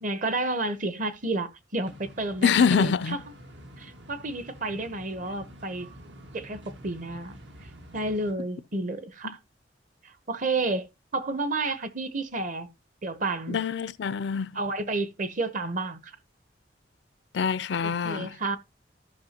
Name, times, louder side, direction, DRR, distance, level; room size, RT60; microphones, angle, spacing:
voice 1, 0.0-3.2 3.8-5.9 6.3-7.4 7.9-9.4 10.0-10.9 11.1-12.7 13.0-13.6 14.5-16.1 17.8-18.6, right 2 dB, 45° right, 0.9 m, -31 dB
In a garden in front of the Castle of Dublin, 1.8-8.3, equal, 80° right, 1.6 m, -48 dB
voice 2, 2.4-3.2 9.2-9.3 13.5-14.6 17.3-18.4, left 6 dB, 75° left, 0.4 m, -25 dB
14.0 x 5.7 x 2.9 m
head